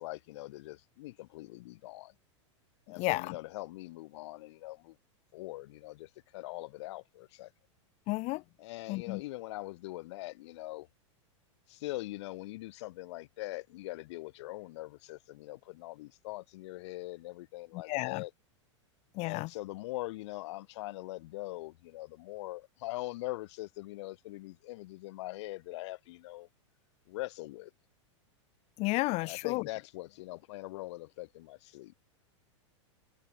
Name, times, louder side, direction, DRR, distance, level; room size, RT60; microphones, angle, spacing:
voice 1, 0.0-2.1 2.9-5.0 5.3-7.5 8.6-10.9 11.7-18.3 19.2-26.5 27.1-27.7 29.2-31.9, left 19 dB, 65° left, 2.2 m, -42 dB
voice 2, 3.0-3.3 8.1-8.4 8.9-9.2 17.7-18.2 19.1-19.5 28.8-29.7, left 23 dB, 40° left, 0.6 m, -32 dB
hypercardioid pair, 115°, 16 cm